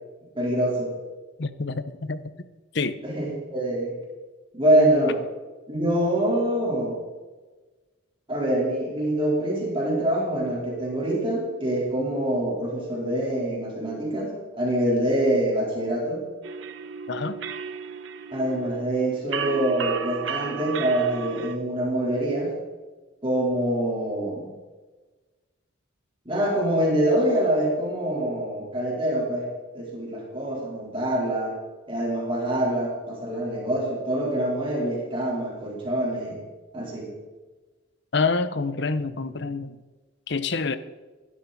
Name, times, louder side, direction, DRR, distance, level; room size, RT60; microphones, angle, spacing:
voice 1, 0.3-0.9 3.0-3.9 4.5-5.2 5.7-6.9 8.3-16.2 18.3-22.5 23.2-24.5 26.3-29.5 29.7-31.6 31.9-36.4 36.7-37.1, right 1 dB, 25° right, 3.9 m, -25 dB
voice 2, 1.4-2.2 2.7-3.0 17.1-17.4 38.1-39.8 40.3-40.8, left 4 dB, 60° left, 0.8 m, -27 dB
sound 1, 16.4-21.6, right 6 dB, 65° right, 0.9 m, -34 dB
15.5 x 12.0 x 4.1 m
head